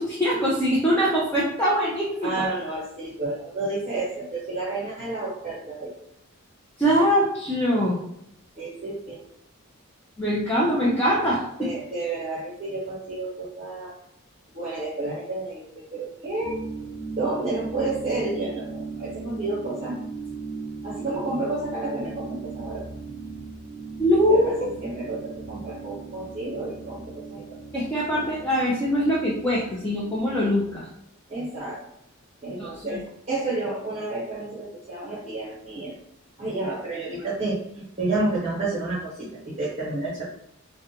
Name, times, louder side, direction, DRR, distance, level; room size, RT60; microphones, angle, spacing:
voice 1, 0.0-2.4 6.8-8.0 10.2-11.7 24.0-24.5 27.7-30.9 32.6-33.0, equal, 10° left, -7 dB, 0.4 m, -23 dB
voice 2, 2.2-5.9 8.6-9.2 11.6-14.0 14.5-16.6 17.2-20.0 20.8-22.9 24.3-27.6 31.3-31.8 32.4-35.9 36.4-40.3, right 2 dB, 30° right, -7 dB, 0.9 m, -30 dB
sound 1, 16.4-30.7, right 4 dB, 35° left, 0.9 m, -38 dB
2.4 x 2.1 x 2.7 m, 0.77 s
head